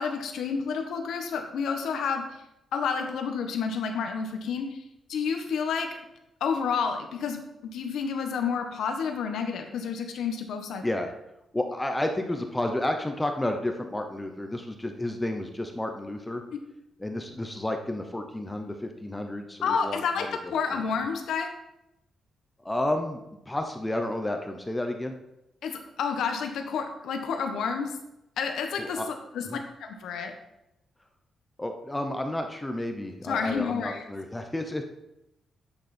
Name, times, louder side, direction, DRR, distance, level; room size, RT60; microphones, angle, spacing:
voice 1, 0.0-2.2 2.7-4.7 5.1-5.9 6.4-10.8 19.6-20.3 20.5-21.5 25.6-27.9 28.4-29.0 29.3-29.4 29.8-30.3 33.3-34.0, left 6 dB, 70° left, 5 dB, 1.2 m, -29 dB
voice 2, 11.5-16.4 17.0-20.5 22.6-25.1 28.8-29.1 29.4-29.6 31.6-34.8, left 1 dB, 10° left, 5 dB, 0.7 m, -31 dB
10.0 x 8.2 x 4.3 m, 0.88 s
wide cardioid pair, 180°, 0 cm